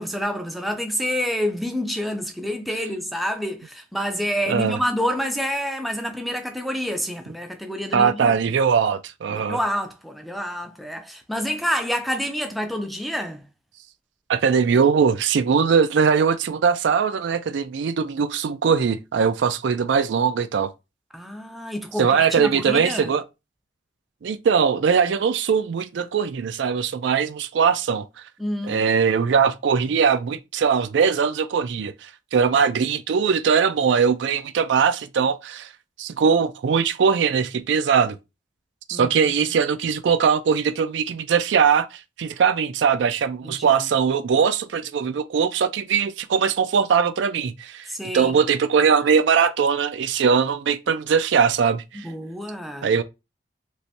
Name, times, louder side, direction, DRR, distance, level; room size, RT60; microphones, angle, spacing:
voice 1, 0.0-8.3 9.3-13.4 21.1-23.1 28.4-28.8 38.9-39.3 43.4-43.8 47.9-48.4 52.0-53.0, equal, ahead, 0.4 m, -28 dB
voice 2, 4.5-4.8 7.9-9.6 14.3-20.7 22.0-23.2 24.2-28.1 28.7-35.7 36.0-38.2 38.9-47.9 48.1-52.1 52.8-53.0, right 6 dB, 80° right, 0.4 m, -21 dB
3.1 x 2.5 x 2.7 m
head